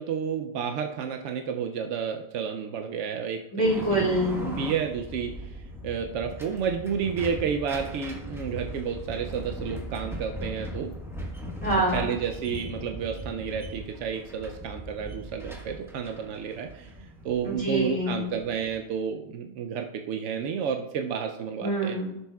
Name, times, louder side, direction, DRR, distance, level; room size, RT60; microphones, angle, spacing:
voice 1, 0.0-4.1 4.4-5.6 5.8-10.9 11.9-22.0, right 7 dB, 90° right, 4 dB, 0.9 m, -31 dB
voice 2, 3.5-4.6 11.6-12.1 17.4-18.3 21.6-22.1, right 1 dB, 40° right, -5 dB, 3.1 m, -26 dB
sound 1, 3.6-18.8, equal, ahead, 1.1 m, -39 dB
14.0 x 6.9 x 2.3 m, 0.91 s
omnidirectional pair, 1.2 m